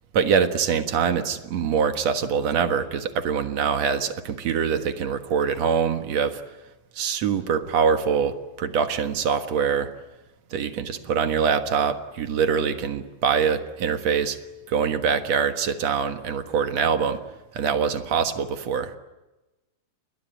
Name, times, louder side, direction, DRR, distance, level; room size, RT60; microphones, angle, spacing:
voice 1, 0.1-6.4 7.0-9.9 10.5-14.4 14.7-17.2 17.5-19.0, right 6 dB, 65° right, 9 dB, 2.7 m, -24 dB
29.0 x 21.5 x 9.4 m, 1.1 s
omnidirectional pair, 3.3 m